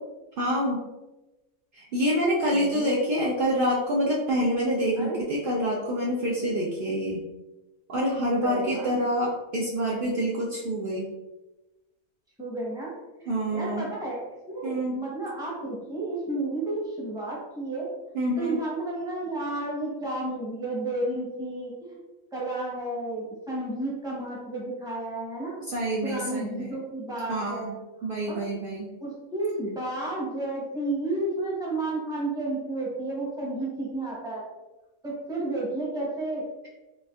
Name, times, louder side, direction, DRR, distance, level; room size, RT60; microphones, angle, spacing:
voice 1, 0.4-0.8 1.7-7.2 7.9-11.1 13.3-13.9 14.6-15.0 18.1-18.6 25.7-26.7 27.3-27.7 28.0-28.9, equal, 80° right, -4 dB, 0.4 m, -27 dB
voice 2, 2.5-3.0 5.0-5.2 8.4-8.9 12.4-12.9 13.2-17.9 18.4-22.0 22.3-25.6 26.0-28.4 29.0-34.4 35.0-36.4, right 2 dB, 5° right, -5 dB, 0.6 m, -32 dB
4.1 x 2.4 x 2.4 m, 1.1 s
omnidirectional pair, 1.5 m